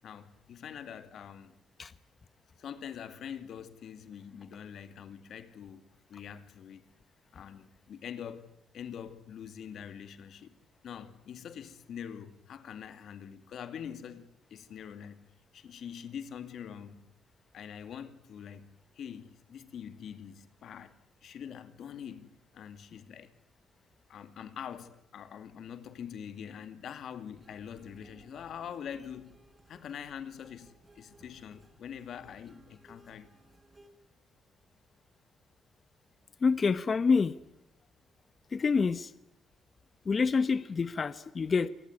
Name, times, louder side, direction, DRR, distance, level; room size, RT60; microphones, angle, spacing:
voice 1, 0.0-1.5 2.6-5.8 6.1-6.9 7.3-10.5 10.8-15.2 15.5-17.1 17.5-18.7 19.0-20.9 21.2-23.3 24.1-29.3 29.7-33.3, left 8 dB, 65° left, 2.4 m, -44 dB
sound 1, 27.3-33.9, right 1 dB, 20° right, 6.0 m, -60 dB
voice 2, 36.4-37.3 38.5-39.1 40.1-41.7, left 5 dB, 40° left, 1.0 m, -27 dB
27.5 x 18.5 x 9.7 m
cardioid pair, 90°, 0 cm